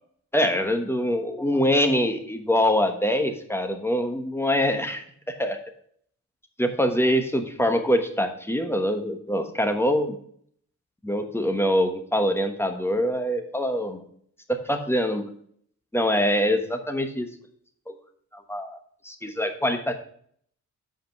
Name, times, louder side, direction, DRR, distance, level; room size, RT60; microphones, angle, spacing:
voice 1, 0.3-5.6 6.6-10.2 11.0-14.0 14.5-15.2 15.9-17.3 17.9-18.0 18.3-18.8 19.0-19.9, equal, 10° left, 6 dB, 1.1 m, -24 dB
8.0 x 5.1 x 5.9 m, 0.62 s
wide cardioid pair, 115°, 31 cm